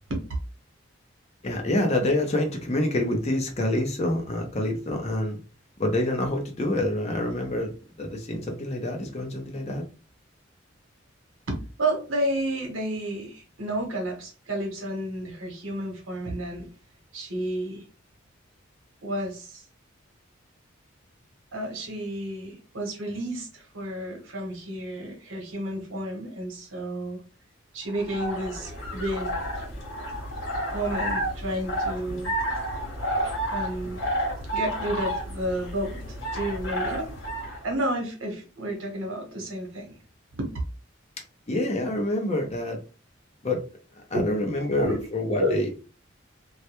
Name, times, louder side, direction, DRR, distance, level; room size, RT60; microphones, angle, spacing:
voice 1, 1.4-5.4 5.8-7.7 8.0-9.8 41.5-42.8 43.4-43.6 44.1-45.7, left 1 dB, 35° left, 3 dB, 0.6 m, -27 dB
voice 2, 11.5-16.7 17.1-17.8 19.0-19.6 21.5-27.2 27.7-29.3 30.7-32.3 33.2-34.0 34.5-37.1 37.6-40.0 40.4-40.5 44.1-44.2 44.6-45.0 45.4-45.7, right 1 dB, 85° right, 2 dB, 0.9 m, -31 dB
sound 1, 27.9-37.6, right 1 dB, 75° left, 1.1 m, -31 dB
2.3 x 2.1 x 2.8 m, 0.34 s
head